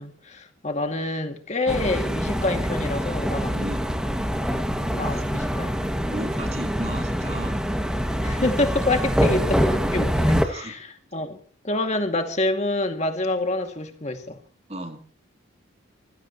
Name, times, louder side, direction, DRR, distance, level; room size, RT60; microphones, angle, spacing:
voice 1, 0.0-3.7 4.9-5.8 6.4-6.6 8.2-10.9 11.1-11.4 11.6-14.4, left 2 dB, 35° left, 2.2 m, -27 dB
sound 1, 1.7-10.4, equal, 5° right, 1.9 m, -25 dB
voice 2, 3.5-3.8 4.7-5.2 6.1-7.6 10.3-10.8 14.7-15.0, right 1 dB, 30° right, 3.3 m, -35 dB
26.5 x 16.5 x 3.0 m
head